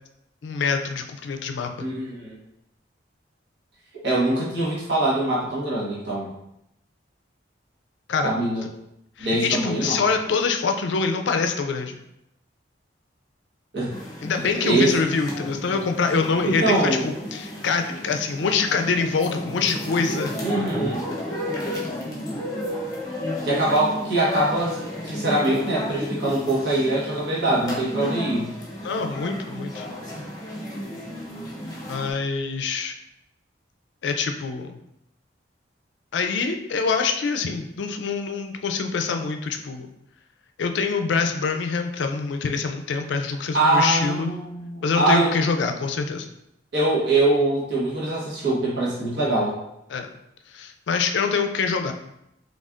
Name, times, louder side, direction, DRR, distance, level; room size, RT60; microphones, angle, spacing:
voice 1, 0.4-1.9 8.1-8.3 9.2-12.0 14.2-20.3 28.8-29.9 31.9-32.9 34.0-34.7 36.1-39.9 40.6-44.3 44.8-46.3 49.9-50.1 50.5-51.9, left 4 dB, 75° left, 6 dB, 0.4 m, -25 dB
voice 2, 1.8-2.3 4.0-6.3 8.2-8.6 9.2-10.0 13.7-13.9 14.4-14.9 16.4-17.1 20.4-21.0 23.4-24.8 25.0-28.5 43.5-45.3 46.7-49.6, right 2 dB, 65° right, -6 dB, 1.3 m, -23 dB
sound 1, 13.9-32.1, left 1 dB, 20° left, 0.7 m, -33 dB
4.2 x 3.2 x 2.4 m, 0.82 s
head